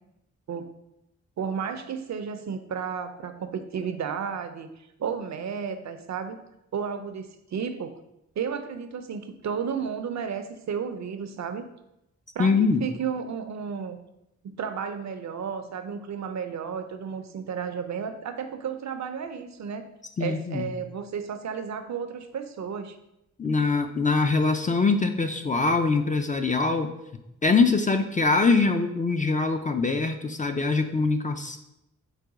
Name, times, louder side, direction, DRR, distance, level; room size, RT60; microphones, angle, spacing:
voice 1, 1.4-6.4 6.7-7.9 8.4-11.7 12.4-14.0 14.4-19.8 20.2-23.0, right 6 dB, 60° right, 8 dB, 0.5 m, -33 dB
voice 2, 12.4-12.9 20.2-20.7 23.4-26.9 27.4-31.6, left 4 dB, 25° left, 7 dB, 0.3 m, -23 dB
4.8 x 2.2 x 4.8 m, 0.86 s
cardioid pair, 70°, 31 cm